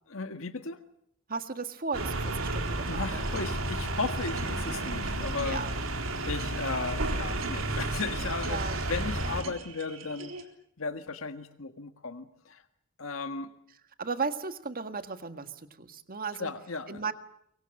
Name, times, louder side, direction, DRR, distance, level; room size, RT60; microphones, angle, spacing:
voice 1, 0.1-0.8 2.9-5.6 6.2-10.3 10.8-12.6 13.0-13.5 16.4-17.0, left 4 dB, 75° left, 8 dB, 1.7 m, -35 dB
voice 2, 1.3-3.2 5.4-5.8 8.4-8.8 14.0-15.5 15.8-16.5 16.9-17.1, right 4 dB, 45° right, 9 dB, 1.7 m, -35 dB
sound 1, 1.9-9.4, right 2 dB, 85° right, 3.4 m, -32 dB
sound 2, 2.5-10.4, right 5 dB, 70° right, 3.6 m, -47 dB
24.0 x 24.0 x 7.7 m, 0.74 s
head